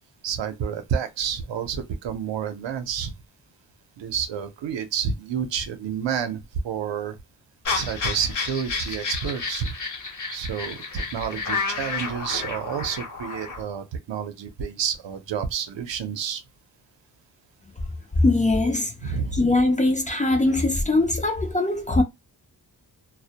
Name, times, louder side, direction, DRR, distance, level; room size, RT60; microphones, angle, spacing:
voice 1, 0.2-3.1 4.0-7.2 7.7-9.7 10.3-16.4 19.0-19.4, right 7 dB, 80° right, 0.6 m, -29 dB
sound 1, 7.6-13.6, left 4 dB, 45° left, 0.8 m, -31 dB
voice 2, 18.2-22.0, left 2 dB, 20° left, 0.4 m, -21 dB
2.1 x 2.1 x 2.7 m
wide cardioid pair, 120°, 43 cm